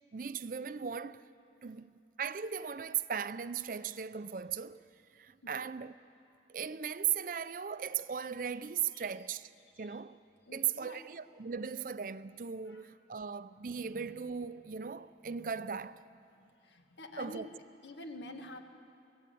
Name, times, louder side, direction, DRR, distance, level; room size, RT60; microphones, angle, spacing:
voice 1, 0.1-1.2 1.6-1.9 2.2-4.9 5.1-5.9 6.5-9.5 9.8-10.2 10.5-16.1 17.2-17.5, right 7 dB, 50° right, 0.5 m, -37 dB
voice 2, 10.5-11.0 12.7-12.8 16.3-17.5 17.8-18.6, left 1 dB, 85° left, 1.6 m, -48 dB
23.5 x 16.0 x 8.4 m
head